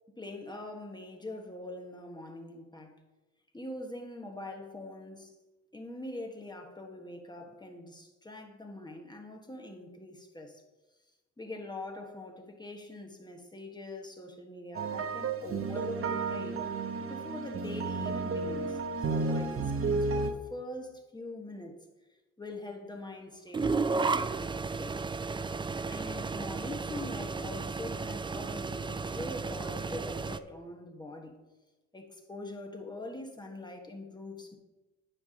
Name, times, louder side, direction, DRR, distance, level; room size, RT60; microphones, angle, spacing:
voice 1, 0.2-3.0 3.5-5.3 5.7-10.6 11.4-18.8 19.1-21.8 22.4-25.0 25.9-31.4 31.9-34.6, left 1 dB, 15° left, 2 dB, 1.3 m, -43 dB
sound 1, 14.7-20.3, right 3 dB, 45° right, 1.0 m, -32 dB
sound 2, 23.5-30.4, right 4 dB, 15° right, 0.3 m, -33 dB
10.0 x 3.5 x 6.4 m, 1.1 s
cardioid pair, 90°, 30 cm